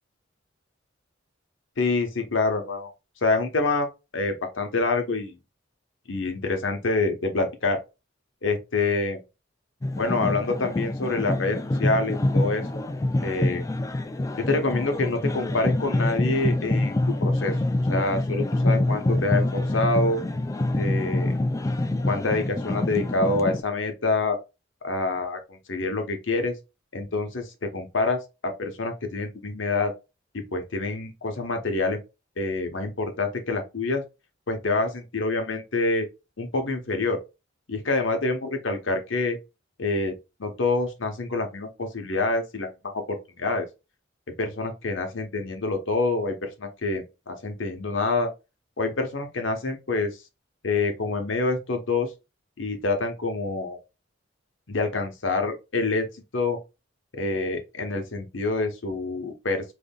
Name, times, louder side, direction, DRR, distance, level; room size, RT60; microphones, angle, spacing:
voice 1, 1.8-2.9 3.2-3.9 4.1-5.4 6.1-7.8 8.4-9.2 10.0-12.6 13.2-13.6 14.4-17.5 17.9-20.2 20.8-21.3 22.0-24.4 24.8-26.5 26.9-29.9 30.3-32.0 32.4-34.0 34.5-36.0 36.4-37.2 37.7-39.4 39.8-40.1 40.4-43.7 44.4-48.3 48.8-50.1 50.6-52.1 52.6-53.8 54.7-56.0 56.3-56.6 57.1-59.6, left 3 dB, 70° left, 1.0 m, -26 dB
sound 1, 9.8-23.6, left 1 dB, 15° left, 0.3 m, -26 dB
3.6 x 3.3 x 2.3 m
head